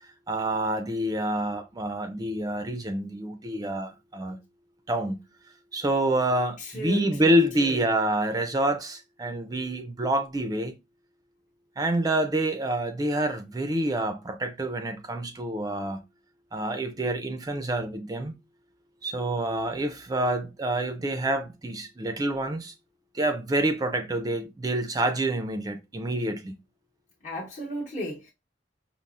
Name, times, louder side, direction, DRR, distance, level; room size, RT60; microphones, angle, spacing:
voice 1, 0.3-4.4 4.9-5.2 5.7-10.7 11.8-16.0 16.5-18.3 19.0-22.7 23.1-26.5, right 1 dB, 20° right, 0.4 m, -27 dB
voice 2, 6.6-7.8 27.2-28.3, left 1 dB, 45° left, 0.9 m, -35 dB
5.2 x 2.0 x 2.3 m
head